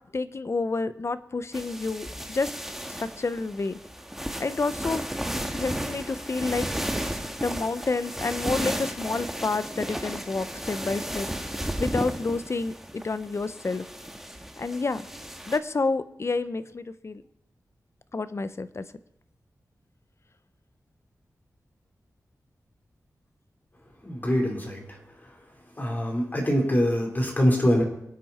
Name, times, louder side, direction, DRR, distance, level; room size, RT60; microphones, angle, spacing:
voice 1, 0.1-2.5 3.0-3.8 4.4-5.0 5.5-6.7 7.4-11.3 11.7-13.9 14.6-15.1 15.5-17.2 18.1-18.9, left 3 dB, 45° left, 13 dB, 0.8 m, -29 dB
sound 1, 1.5-15.6, equal, 5° right, 1.6 m, -34 dB
voice 2, 24.0-25.0 25.8-27.8, equal, 30° left, 0 dB, 4.3 m, -24 dB
24.0 x 8.9 x 4.3 m, 0.79 s
wide cardioid pair, 70°, 6 cm